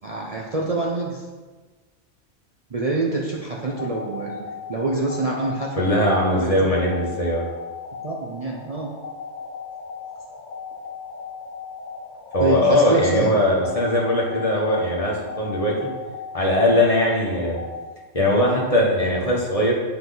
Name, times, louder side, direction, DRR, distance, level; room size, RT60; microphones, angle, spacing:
voice 1, 0.0-1.2 2.7-4.4 4.7-6.7 8.0-8.9 12.4-13.4, right 3 dB, 35° right, -3 dB, 0.8 m, -26 dB
sound 1, 3.6-17.8, left 5 dB, 70° left, 1.1 m, -37 dB
voice 2, 5.8-7.5 12.3-15.7 16.3-17.6 18.1-19.7, left 1 dB, 30° left, -3 dB, 1.5 m, -20 dB
9.9 x 4.6 x 4.1 m, 1.4 s
omnidirectional pair, 1.2 m